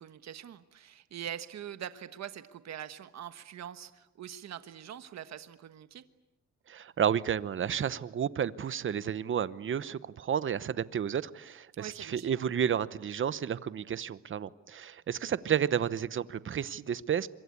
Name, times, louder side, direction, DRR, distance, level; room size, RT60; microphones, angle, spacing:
voice 1, 0.0-6.0 11.8-12.3, right 10 dB, 60° right, 11 dB, 1.3 m, -43 dB
voice 2, 6.7-17.3, right 8 dB, 40° right, 16 dB, 0.9 m, -31 dB
26.0 x 23.5 x 8.5 m, 0.96 s
cardioid pair, 125°, 30 cm